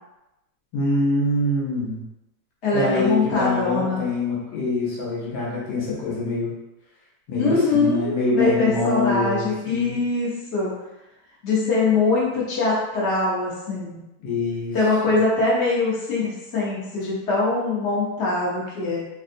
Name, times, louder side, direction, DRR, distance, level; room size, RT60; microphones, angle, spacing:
voice 1, 0.7-2.0 2.7-6.5 7.3-10.0 14.2-14.8, left 2 dB, 65° left, -6 dB, 1.6 m, -24 dB
voice 2, 2.6-4.0 7.4-10.7 11.4-14.0 14.7-19.0, left 3 dB, 45° left, -7 dB, 0.8 m, -23 dB
3.8 x 2.4 x 2.6 m, 0.96 s
omnidirectional pair, 2.4 m